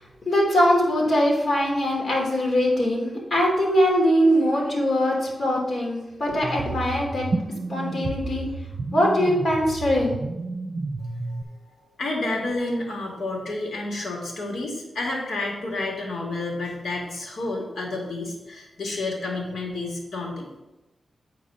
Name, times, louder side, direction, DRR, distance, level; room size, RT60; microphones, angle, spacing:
voice 1, 0.3-7.3 7.7-8.6 8.9-10.2, equal, 50° left, -1 dB, 2.7 m, -22 dB
sound 1, 6.4-11.4, right 3 dB, 50° right, 0.5 m, -31 dB
voice 2, 12.0-20.5, left 2 dB, 75° left, -1 dB, 2.3 m, -30 dB
8.6 x 4.6 x 5.1 m, 1.0 s
wide cardioid pair, 90°, 0 cm